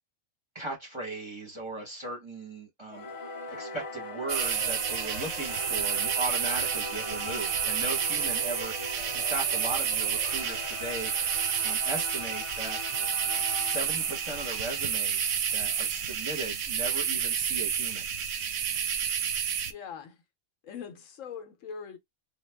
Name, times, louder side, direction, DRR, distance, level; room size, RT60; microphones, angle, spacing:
voice 1, 0.5-3.1 3.5-12.8 13.6-18.0, right 2 dB, 25° right, 0.9 m, -38 dB
Singing / Musical instrument, 2.9-15.8, left 3 dB, 50° left, 0.4 m, -41 dB
sound 1, 4.3-19.7, right 8 dB, 70° right, 0.8 m, -30 dB
voice 2, 19.7-20.2 20.6-22.0, left 7 dB, 70° left, 0.9 m, -41 dB
3.4 x 2.2 x 3.3 m
omnidirectional pair, 1.5 m